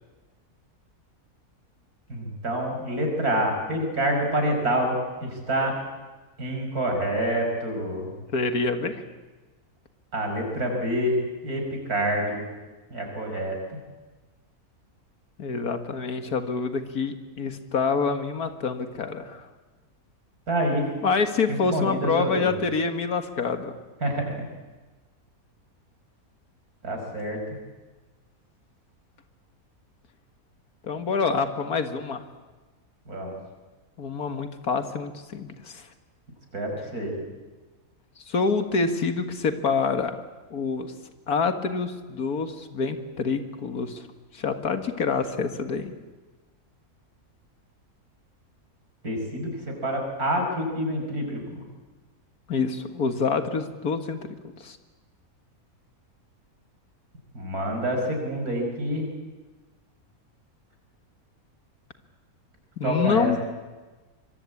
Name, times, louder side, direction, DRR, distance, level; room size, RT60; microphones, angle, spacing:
voice 1, 2.1-5.0 5.2-5.7 6.4-8.1 10.1-11.2 11.4-11.6 11.9-12.4 12.9-13.8 20.5-20.9 21.7-22.5 24.0-24.3 26.8-27.4 33.1-33.3 36.5-37.2 49.0-51.6 57.3-59.1 62.8-63.4, right 1 dB, 85° right, 3 dB, 6.2 m, -27 dB
voice 2, 8.3-9.0 15.4-19.5 21.0-23.7 30.8-32.3 34.0-35.9 38.2-40.2 40.5-40.9 41.3-44.1 44.3-45.9 52.5-54.2 54.6-54.8 62.8-63.4, left 4 dB, 90° left, 8 dB, 2.2 m, -26 dB
25.0 x 23.0 x 8.5 m, 1.2 s
omnidirectional pair, 1.6 m